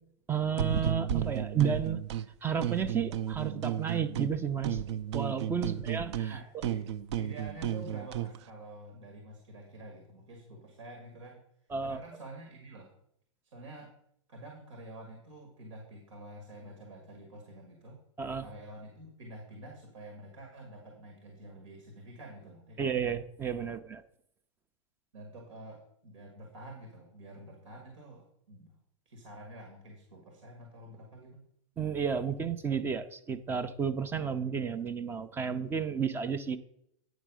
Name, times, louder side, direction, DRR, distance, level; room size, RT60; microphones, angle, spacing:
voice 1, 0.3-2.0 2.4-4.8 5.1-6.6 11.7-12.0 18.2-18.5 22.8-24.0 31.8-36.6, right 7 dB, 15° right, 12 dB, 0.4 m, -32 dB
sound 1, 0.6-2.3 2.6-4.4 4.6-8.4, right 9 dB, 60° right, 0.5 m, -33 dB
voice 2, 6.3-6.9 7.2-11.5 11.8-12.9 13.5-13.9 14.3-18.0 18.4-23.0 25.1-28.7 29.1-31.5, right 1 dB, 90° right, 2 dB, 2.0 m, -48 dB
9.2 x 4.5 x 6.1 m, 0.73 s
hypercardioid pair, 140°, 16 cm